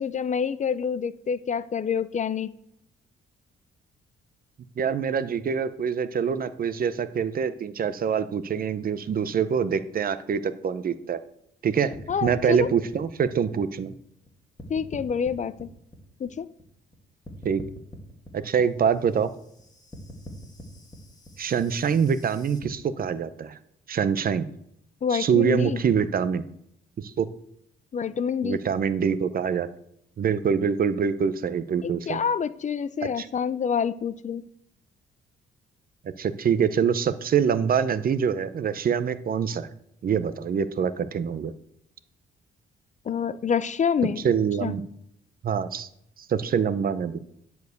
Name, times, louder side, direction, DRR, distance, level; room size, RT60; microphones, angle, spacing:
voice 1, 0.0-2.5 12.1-12.7 14.7-15.7 16.2-16.5 25.0-25.8 27.9-28.6 31.8-34.4 43.1-44.2 44.6-44.7, left 7 dB, 40° left, 0.5 m, -27 dB
voice 2, 4.8-11.2 11.6-11.9 12.2-13.9 17.4-17.6 18.3-19.3 21.4-23.6 23.9-24.5 25.1-26.4 27.0-27.3 28.4-29.7 30.2-32.2 33.0-33.3 36.2-39.7 40.0-41.5 44.2-44.8 45.4-45.9 46.3-47.2, right 7 dB, 45° right, 0.7 m, -25 dB
sound 1, 11.9-14.3 14.6-17.0 17.2-22.7, left 1 dB, 20° left, 2.3 m, -45 dB
10.5 x 4.6 x 6.5 m
cardioid pair, 90°, 20 cm